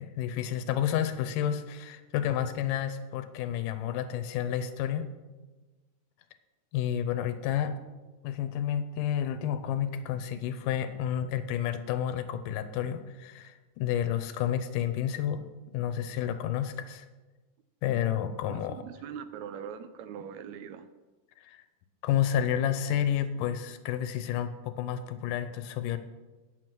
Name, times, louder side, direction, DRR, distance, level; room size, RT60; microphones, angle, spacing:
voice 1, 0.0-5.1 6.7-7.7 8.2-15.4 15.7-17.1 17.8-18.8 21.4-21.6 22.0-26.0, left 10 dB, 90° left, 10 dB, 2.3 m, -30 dB
voice 2, 18.5-20.9, right 8 dB, 80° right, 11 dB, 1.7 m, -42 dB
9.2 x 7.8 x 6.1 m, 1.2 s
omnidirectional pair, 3.7 m